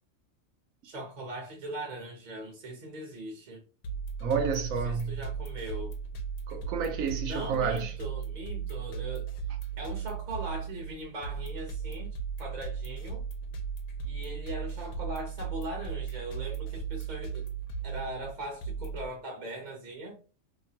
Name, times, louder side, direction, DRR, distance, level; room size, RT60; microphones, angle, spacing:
voice 1, 0.8-3.6 4.8-6.0 7.2-9.3 9.8-13.2 14.0-17.5 17.8-20.2, right 1 dB, 40° right, 0.7 m, -40 dB
sound 1, 3.8-19.1, right 6 dB, 85° left, 1.0 m, -36 dB
voice 2, 4.2-5.2 6.5-7.9, right 6 dB, 80° right, 1.1 m, -30 dB
3.0 x 2.1 x 2.7 m
omnidirectional pair, 1.4 m